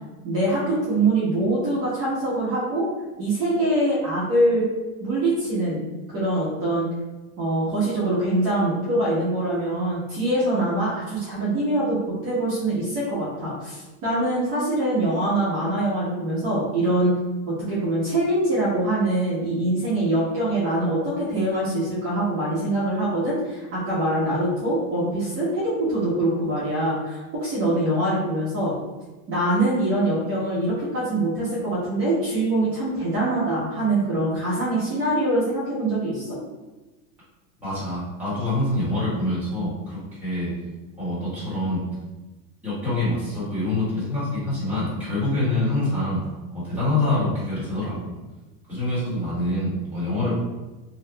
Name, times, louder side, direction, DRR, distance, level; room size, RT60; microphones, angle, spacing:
voice 1, 0.2-2.9 3.2-4.7 5.0-5.8 6.1-6.9 7.4-17.1 17.5-28.7 29.3-36.4, right 1 dB, 35° right, -9 dB, 0.9 m, -24 dB
voice 2, 37.6-40.5 41.0-41.8 42.6-46.2 46.5-48.2 48.7-50.4, left 2 dB, 5° right, -11 dB, 1.3 m, -25 dB
2.8 x 2.4 x 3.2 m, 1.1 s
supercardioid pair, 160°, 42 cm